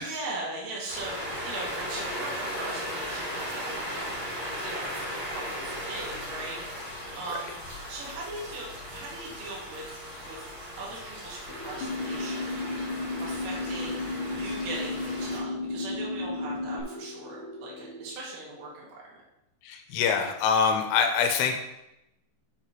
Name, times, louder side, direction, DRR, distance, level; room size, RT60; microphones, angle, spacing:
voice 1, 0.0-4.2 4.6-4.9 5.2-9.9 10.2-10.4 10.8-12.5 13.2-19.0, right 2 dB, 80° right, -4 dB, 4.6 m, -39 dB
sound 1, 0.9-15.4, equal, 30° right, 2.0 m, -37 dB
sound 2, 11.5-18.1, equal, 15° left, 0.6 m, -44 dB
sound 3, 11.8-16.8, left 3 dB, 70° left, 2.7 m, -33 dB
voice 2, 19.6-21.6, left 6 dB, 85° left, 5 dB, 3.3 m, -24 dB
9.0 x 6.6 x 3.0 m, 0.88 s
omnidirectional pair, 5.7 m